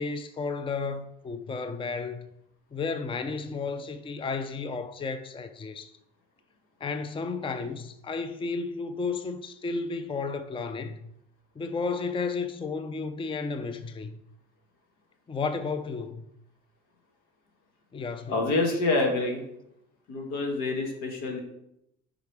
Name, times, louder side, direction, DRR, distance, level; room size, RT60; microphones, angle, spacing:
voice 1, 0.0-2.3 2.7-5.9 6.8-11.0 11.6-14.2 15.3-16.3 17.9-18.4, left 4 dB, 15° left, 0.5 m, -33 dB
voice 2, 18.3-19.4 20.1-21.4, left 2 dB, 80° left, 1.6 m, -27 dB
5.1 x 4.9 x 4.6 m
supercardioid pair, 75°, 30 cm